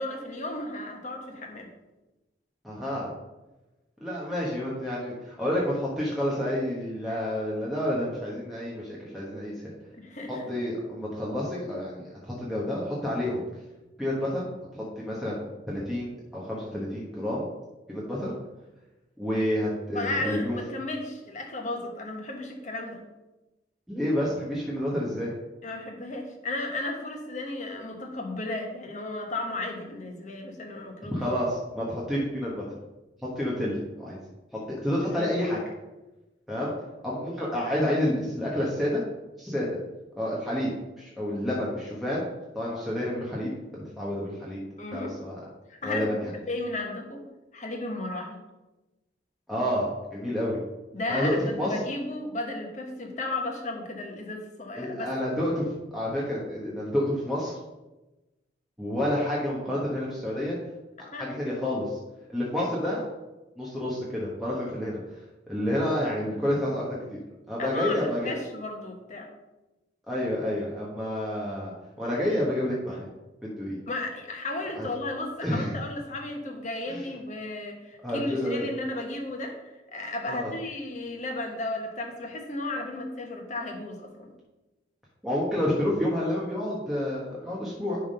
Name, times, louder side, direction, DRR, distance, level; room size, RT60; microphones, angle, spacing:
voice 1, 0.0-1.7 7.1-7.2 9.9-10.5 19.9-23.0 25.6-31.2 35.0-35.4 42.7-42.8 44.8-45.1 45.7-46.0 46.3-47.3 47.5-48.4 50.9-55.1 61.1-61.6 67.6-69.3 73.9-84.3, left 2 dB, 40° left, 2 dB, 1.3 m, -34 dB
voice 2, 2.6-3.1 4.0-9.5 10.5-13.4 14.0-14.4 14.7-17.5 17.9-18.3 19.2-20.6 23.9-25.3 31.1-32.6 33.4-34.2 34.7-35.6 36.5-36.7 37.0-39.0 39.4-39.7 40.2-40.7 41.0-42.2 42.5-44.6 44.9-45.4 45.8-46.3 49.5-50.6 51.1-51.7 54.8-57.5 58.8-60.6 61.2-62.0 62.3-63.0 63.6-65.2 65.5-67.2 67.5-68.4 70.1-71.7 72.0-73.1 73.6-73.8 74.7-74.9 75.4-75.7 76.9-77.0 78.0-78.7 80.2-80.5 85.2-88.0, left 1 dB, ahead, -6 dB, 1.3 m, -29 dB
10.5 x 3.7 x 5.5 m, 1.1 s
head